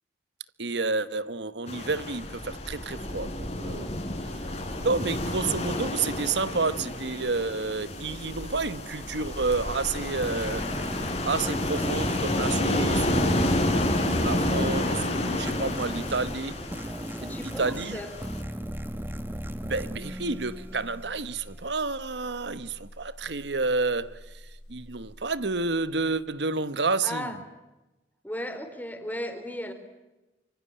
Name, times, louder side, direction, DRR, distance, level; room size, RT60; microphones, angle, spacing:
voice 1, 0.6-3.9 4.8-13.5 14.0-16.5 17.2-18.0 19.6-24.4 24.7-27.3, right 3 dB, 85° right, 1.2 m, -30 dB
sound 1, 1.7-18.4, left 1 dB, 40° left, 4.0 m, -30 dB
sound 2, 10.2-21.4, equal, 10° right, 1.2 m, -37 dB
voice 2, 17.1-18.1 27.0-27.4 28.2-29.7, left 1 dB, 10° left, 3.7 m, -36 dB
sound 3, 18.6-26.4, equal, 80° left, 6.8 m, -46 dB
26.0 x 24.0 x 8.9 m
head